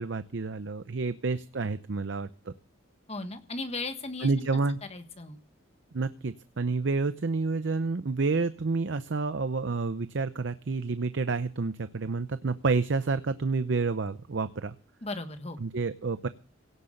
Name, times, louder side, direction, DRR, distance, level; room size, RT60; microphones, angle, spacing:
voice 1, 0.0-2.5 4.2-4.8 5.9-14.7 15.6-16.3, right 4 dB, 60° right, 12 dB, 0.6 m, -29 dB
voice 2, 3.1-4.3 4.9-5.4 15.0-15.6, left 3 dB, 30° left, 8 dB, 1.4 m, -36 dB
17.5 x 8.0 x 6.5 m, 0.39 s
head